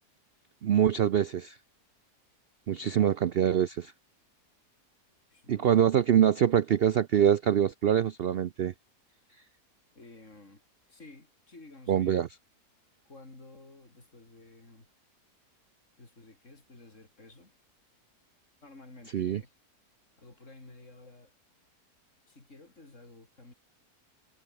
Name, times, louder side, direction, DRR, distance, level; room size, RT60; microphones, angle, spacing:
voice 1, 0.6-1.5 2.7-3.9 5.5-8.7 11.9-12.3 19.1-19.4, right 9 dB, 85° right, 0.5 m, -24 dB
voice 2, 2.8-3.2 5.3-5.8 10.0-10.6 10.9-12.2 13.1-14.9 16.0-17.6 18.6-19.5 20.2-21.3 22.3-23.5, left 2 dB, 45° left, 5.5 m, -52 dB
omnidirectional pair, 1.7 m